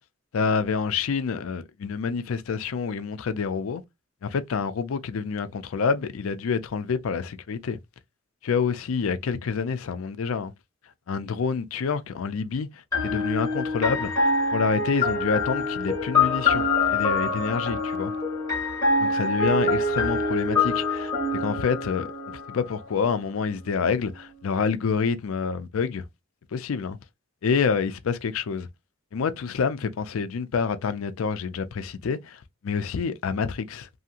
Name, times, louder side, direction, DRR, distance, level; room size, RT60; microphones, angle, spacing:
voice 1, 0.3-3.8 4.2-7.8 8.4-10.5 11.1-18.1 19.0-21.1 21.4-22.1 22.5-26.0 26.5-27.0 27.4-28.7 29.1-33.9, left 5 dB, 75° left, 0.4 m, -27 dB
sound 1, 12.9-22.7, left 3 dB, 15° left, 1.4 m, -25 dB
2.8 x 2.7 x 2.5 m
head